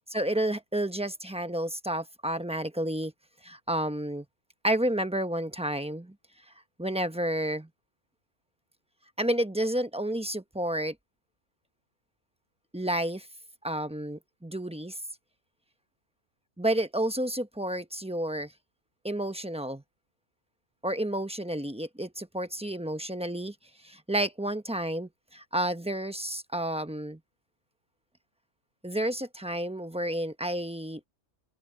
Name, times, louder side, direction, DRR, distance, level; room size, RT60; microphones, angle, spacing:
voice 1, 0.1-3.1 3.4-4.2 4.6-6.1 6.8-7.7 9.2-10.9 12.7-13.3 13.6-15.0 16.6-18.5 19.0-19.8 20.8-23.5 23.8-27.2 28.8-31.0, right 1 dB, 5° right, 0.8 m, -30 dB
open air
omnidirectional pair, 1.3 m